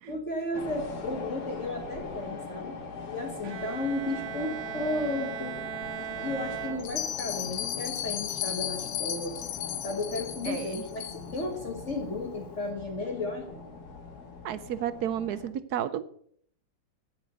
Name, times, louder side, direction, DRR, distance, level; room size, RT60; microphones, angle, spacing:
voice 1, 0.1-5.7 6.0-9.4 9.8-13.6, left 2 dB, 40° left, 2 dB, 1.7 m, -34 dB
sound 1, 0.5-15.5, left 4 dB, 60° left, 2.1 m, -42 dB
Bowed string instrument, 3.4-7.4, right 9 dB, 90° right, 1.6 m, -38 dB
Bell, 6.8-11.4, left 11 dB, 85° left, 1.6 m, -35 dB
voice 2, 10.5-10.8 14.4-16.0, right 10 dB, 70° right, 14 dB, 1.0 m, -32 dB
9.0 x 8.5 x 6.7 m, 0.63 s
omnidirectional pair, 2.0 m